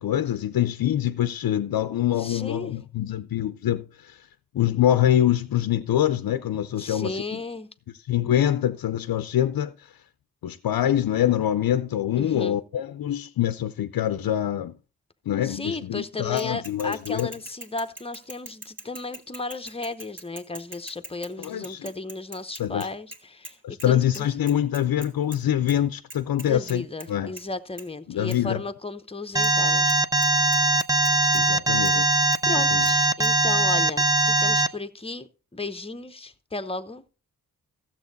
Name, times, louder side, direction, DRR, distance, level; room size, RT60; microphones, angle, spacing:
voice 1, 0.0-4.3 4.5-7.4 8.1-9.9 10.4-14.7 15.3-17.3 21.4-21.9 22.6-22.9 23.6-27.3 28.1-28.6 31.3-32.1 32.7-32.9, left 11 dB, 85° left, 0.5 m, -25 dB
voice 2, 2.2-2.7 6.8-7.7 12.2-12.6 15.4-23.6 23.8-24.3 26.4-29.9 32.4-37.0, left 3 dB, 15° left, 0.8 m, -34 dB
Bicycle / Mechanisms, 16.4-23.5 23.8-23.9 24.1-25.4 25.7-25.8 26.1-27.1 27.4-27.5 27.8-27.9 28.3-28.4 29.4-29.5 29.9-30.0 30.2-31.4 31.8-31.9 32.3-32.4 32.9-33.0 33.2-33.3, right 2 dB, 35° right, 2.0 m, -42 dB
Alarm, 29.4-34.7, right 2 dB, 10° right, 0.5 m, -21 dB
14.5 x 7.4 x 4.0 m
wide cardioid pair, 95°, 34 cm